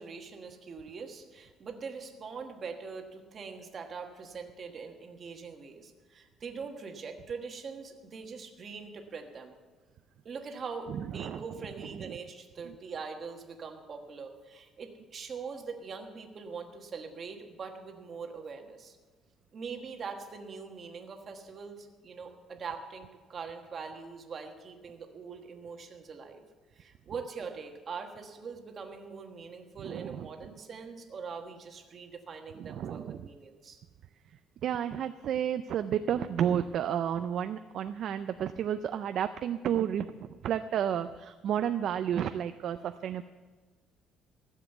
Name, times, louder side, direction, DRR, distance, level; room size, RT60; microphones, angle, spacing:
voice 1, 0.0-9.6 10.2-19.0 19.5-26.4 26.7-33.8, right 5 dB, 30° right, 4 dB, 1.3 m, -42 dB
voice 2, 10.9-11.4 12.0-12.2 12.6-12.8 29.8-30.3 32.6-33.3 34.3-43.2, right 9 dB, 50° right, 10 dB, 0.4 m, -32 dB
15.0 x 7.4 x 8.1 m, 1.4 s
cardioid pair, 175°, 0 cm